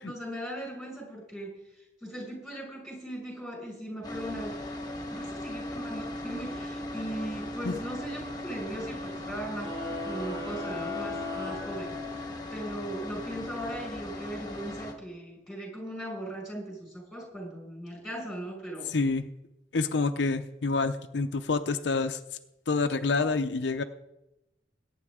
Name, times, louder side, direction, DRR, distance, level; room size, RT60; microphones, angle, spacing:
voice 1, 0.0-4.6 5.1-9.7 10.0-12.0 12.5-18.9, right 1 dB, ahead, -2 dB, 5.7 m, -39 dB
sound 1, 4.0-14.9, left 1 dB, 20° left, 1.5 m, -38 dB
sound 2, 9.6-12.5, left 2 dB, 25° right, 3.5 m, -37 dB
voice 2, 18.9-19.3 19.7-22.2 22.7-23.8, left 3 dB, 70° left, 7 dB, 0.6 m, -27 dB
21.5 x 9.3 x 3.6 m, 0.94 s
head